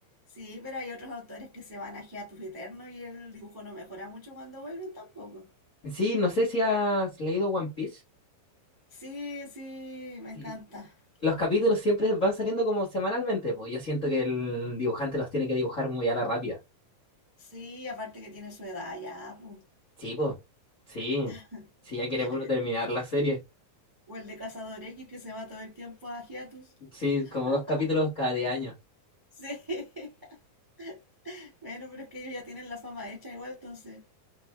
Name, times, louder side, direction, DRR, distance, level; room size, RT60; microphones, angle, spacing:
voice 1, 0.3-5.5 8.9-11.0 17.4-19.6 21.2-21.7 22.2-22.5 24.1-26.7 27.2-27.9 29.3-30.4 30.8-34.0, left 1 dB, 35° right, 0.3 m, -41 dB
voice 2, 5.8-8.0 10.3-10.5 11.2-16.6 20.0-20.3 20.9-21.3 21.9-23.4 26.9-28.7, left 1 dB, 80° left, 0.7 m, -28 dB
5.2 x 2.9 x 3.3 m
omnidirectional pair, 4.0 m